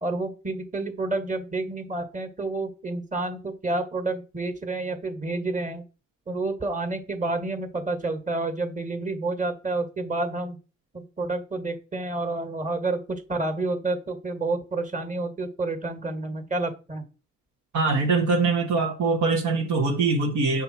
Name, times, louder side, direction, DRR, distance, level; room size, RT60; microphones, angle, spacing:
voice 1, 0.0-5.8 6.3-10.6 10.9-17.0, right 2 dB, 25° right, 2.0 m, -29 dB
voice 2, 17.7-20.6, right 3 dB, 70° right, 1.7 m, -23 dB
7.7 x 5.3 x 4.4 m
cardioid pair, 90°, 30 cm